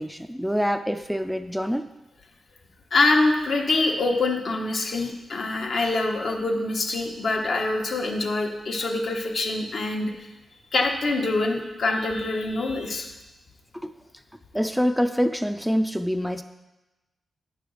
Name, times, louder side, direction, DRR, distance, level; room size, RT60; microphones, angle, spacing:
voice 1, 0.0-1.9 13.7-13.9 14.5-16.4, equal, ahead, 8 dB, 0.3 m, -25 dB
voice 2, 2.9-10.1 10.7-13.1, left 2 dB, 65° left, 1 dB, 1.0 m, -25 dB
9.3 x 3.4 x 6.3 m, 1.0 s
cardioid pair, 75°, 0 cm